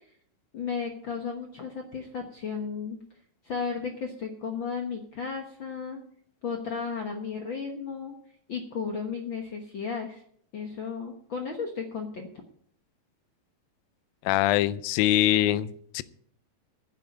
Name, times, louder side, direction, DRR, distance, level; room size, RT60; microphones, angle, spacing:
voice 1, 0.5-3.0 3.4-6.0 6.4-8.1 8.5-10.2 10.5-12.3, left 5 dB, 60° left, 1.2 m, -34 dB
voice 2, 14.3-16.0, left 13 dB, 85° left, 2.4 m, -23 dB
10.0 x 7.9 x 8.7 m
omnidirectional pair, 4.0 m